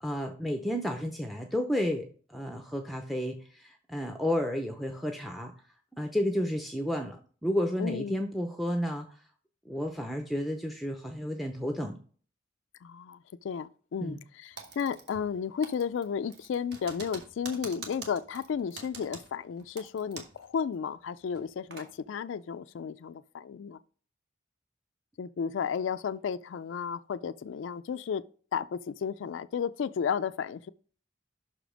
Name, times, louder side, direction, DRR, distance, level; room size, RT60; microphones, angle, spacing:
voice 1, 0.0-5.5 6.0-7.2 7.4-9.1 9.7-12.0 14.0-14.2, equal, ahead, 0.5 m, -31 dB
voice 2, 7.8-8.2 12.8-13.2 13.4-23.8 25.2-28.3 28.5-30.7, left 7 dB, 85° left, 0.3 m, -33 dB
Typing, 14.6-15.4 15.6-20.5 20.7-20.8 21.3-21.9, right 4 dB, 55° right, 1.5 m, -45 dB
5.9 x 5.1 x 5.0 m
head